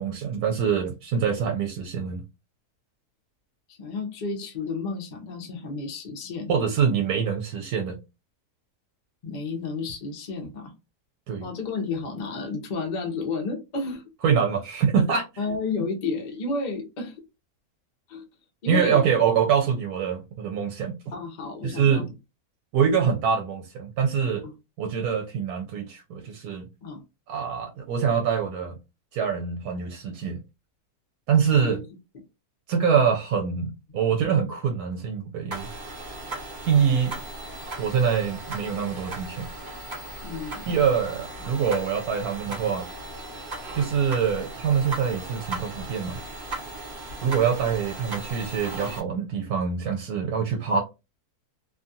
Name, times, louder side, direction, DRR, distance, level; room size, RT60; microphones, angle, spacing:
voice 1, 0.0-2.2 6.5-8.0 11.3-11.5 14.2-15.3 18.7-20.9 21.6-22.1 22.7-24.5 24.8-26.7 27.3-28.8 29.1-30.4 31.3-31.8 32.7-35.7 36.6-37.2 37.8-39.5 40.7-42.9 43.7-46.2 47.2-50.8, right 7 dB, 80° right, 1.1 m, -24 dB
voice 2, 3.8-6.5 9.2-10.7 11.4-14.0 15.4-17.2 18.1-18.2 18.6-19.0 21.1-22.0 24.4-24.5 26.8-27.0 31.6-31.8 33.9-34.0 40.2-40.7, left 4 dB, 45° left, 0.6 m, -31 dB
sound 1, 35.5-49.0, right 2 dB, 40° right, 1.0 m, -37 dB
2.7 x 2.3 x 2.6 m
omnidirectional pair, 1.6 m